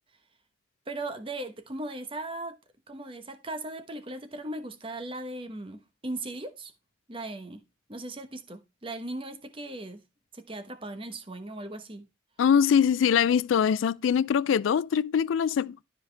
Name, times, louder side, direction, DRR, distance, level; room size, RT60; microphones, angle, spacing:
voice 1, 0.9-2.6 2.9-6.7 7.1-7.6 7.9-10.0 10.3-12.1, right 2 dB, 25° right, 1.1 m, -38 dB
voice 2, 12.4-15.8, left 7 dB, 85° left, 0.3 m, -23 dB
12.5 x 5.1 x 3.3 m
head